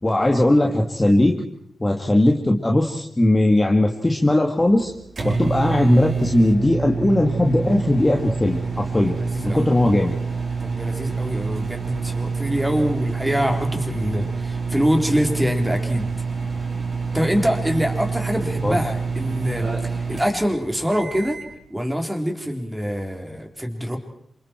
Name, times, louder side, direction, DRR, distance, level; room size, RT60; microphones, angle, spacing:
voice 1, 0.0-1.4 1.8-4.9 5.2-9.1 9.4-10.1 18.6-18.8, left 1 dB, 15° left, 2 dB, 2.0 m, -19 dB
sound 1, 4.6-21.5, right 5 dB, 45° right, 6.2 m, -27 dB
voice 2, 9.2-9.7 10.6-16.1 17.1-21.4 21.7-24.0, equal, 5° right, 3 dB, 3.6 m, -24 dB
29.0 x 27.5 x 4.5 m, 0.69 s
wide cardioid pair, 135°, 0 cm